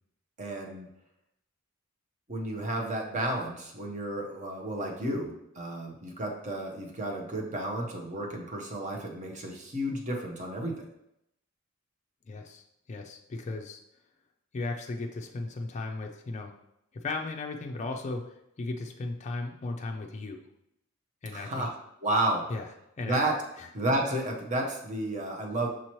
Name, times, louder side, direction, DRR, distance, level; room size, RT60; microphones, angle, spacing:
voice 1, 0.4-0.9 2.3-10.8 21.3-21.7 22.0-22.5 23.0-23.4 23.7-25.7, right 1 dB, 35° right, 1 dB, 0.8 m, -32 dB
voice 2, 12.3-13.8 14.5-16.5 17.0-18.2 18.6-20.4 21.2-21.7 22.5-22.7 23.0-23.2 23.6-23.7, left 3 dB, 35° left, 2 dB, 0.4 m, -36 dB
6.1 x 2.9 x 3.0 m, 0.81 s
head